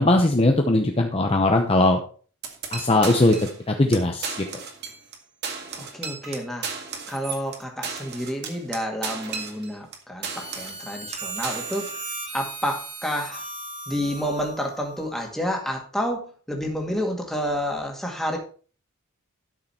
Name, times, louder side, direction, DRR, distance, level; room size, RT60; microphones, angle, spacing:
voice 1, 0.0-2.0 2.7-3.4 3.7-4.3, left 2 dB, 25° left, 3 dB, 0.8 m, -19 dB
sound 1, 2.4-3.6 3.9-4.0 4.2-5.2 5.4-10.0 10.2-10.8 11.1-12.0, right 5 dB, 50° right, 1.9 m, -34 dB
voice 2, 5.8-6.7 7.1-12.0 12.3-13.5 13.9-18.4, equal, ahead, 1 dB, 2.0 m, -29 dB
Harmonica, 10.2-15.4, right 3 dB, 30° right, 2.7 m, -37 dB
12.0 x 6.7 x 4.3 m, 0.41 s
head